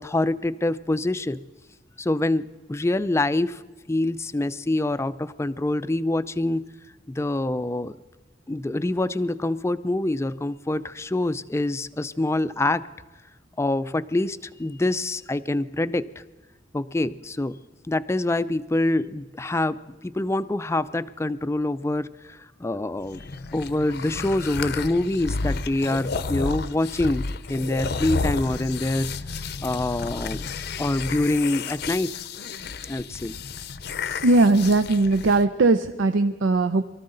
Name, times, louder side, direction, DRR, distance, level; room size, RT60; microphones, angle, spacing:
voice 1, 0.0-1.4 2.0-3.6 3.9-6.7 7.1-8.0 8.5-12.8 13.6-16.2 16.7-17.6 17.9-27.2 27.5-29.1 29.6-32.1 32.9-33.4, left 2 dB, 15° left, 14 dB, 0.4 m, -25 dB
sound 1, 23.0-35.4, left 4 dB, 60° left, 0.6 m, -32 dB
voice 2, 34.2-36.8, right 2 dB, 85° right, 10 dB, 0.6 m, -19 dB
23.0 x 13.5 x 3.9 m, 1.2 s
head